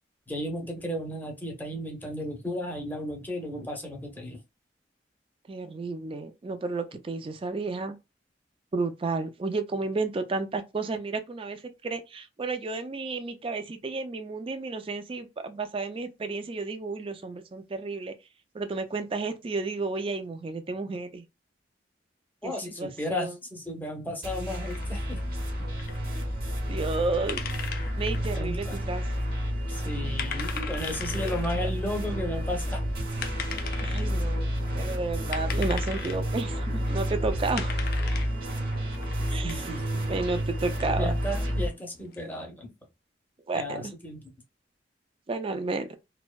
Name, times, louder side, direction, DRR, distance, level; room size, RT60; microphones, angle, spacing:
voice 1, 0.3-4.4 22.4-25.2 28.4-28.8 29.7-32.8 39.4-40.1 41.0-42.7 43.5-44.2, equal, 10° left, 0.6 m, -34 dB
voice 2, 5.5-8.0 8.7-18.1 18.5-21.2 22.4-22.5 22.8-23.4 26.1-26.2 26.7-27.5 28.0-29.0 31.2-31.3 33.8-34.4 34.7-37.7 39.3-39.7 40.1-41.1 43.5-43.9 45.3-45.9, right 3 dB, 30° right, 0.3 m, -32 dB
sound 1, 24.2-41.7, equal, 55° right, 0.9 m, -30 dB
sound 2, 24.6-42.4, left 7 dB, 55° left, 0.4 m, -41 dB
2.6 x 2.1 x 2.2 m
head